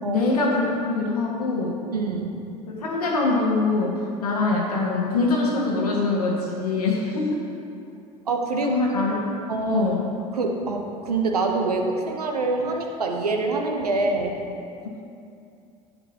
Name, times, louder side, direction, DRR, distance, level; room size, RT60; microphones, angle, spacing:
voice 1, 0.0-1.8 2.7-3.9 4.2-7.4 8.6-9.2 9.7-10.0, left 3 dB, 75° left, -3 dB, 1.7 m, -23 dB
voice 2, 1.9-2.3 8.3-8.8 9.5-9.8 10.3-14.4, right 3 dB, 80° right, 2 dB, 0.9 m, -25 dB
11.5 x 8.7 x 2.9 m, 2.5 s
figure-of-eight pair, 65°, 19 cm